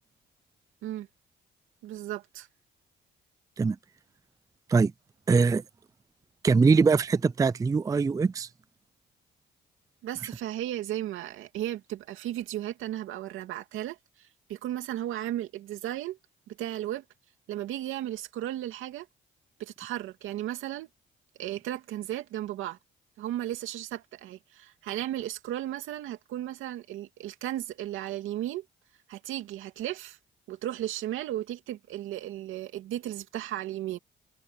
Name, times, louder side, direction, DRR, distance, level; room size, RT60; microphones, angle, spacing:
voice 1, 1.8-2.5 10.0-16.2 16.5-17.0 17.5-19.1 19.6-20.9 21.4-22.8 23.2-28.6 29.1-30.2 30.5-34.0, right 13 dB, 90° right, 2.6 m, -35 dB
voice 2, 5.3-5.6 6.4-8.5, right 4 dB, 15° right, 0.4 m, -22 dB
cardioid pair, 90°, 20 cm